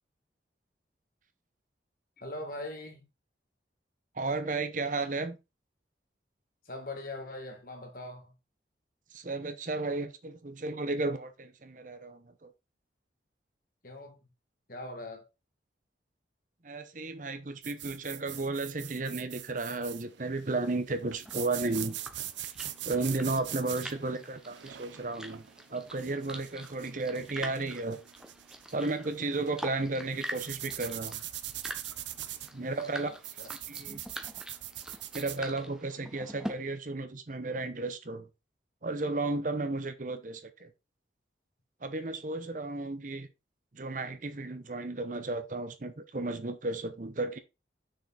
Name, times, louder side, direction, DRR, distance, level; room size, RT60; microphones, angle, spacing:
voice 1, 2.2-3.0 6.7-8.3 13.8-14.3 14.7-15.3 32.9-33.5, left 2 dB, 50° left, 1.8 m, -41 dB
voice 2, 4.1-5.4 9.1-12.5 16.6-22.0 22.8-28.0 28.7-31.2 32.5-33.1 33.7-34.0 35.1-38.3 38.8-40.7 41.8-43.3 43.7-47.4, right 3 dB, 45° right, 0.8 m, -34 dB
sound 1, 17.6-35.4, right 12 dB, 80° right, 0.6 m, -43 dB
sound 2, 21.3-36.5, equal, 5° right, 1.0 m, -45 dB
6.3 x 4.9 x 4.1 m
head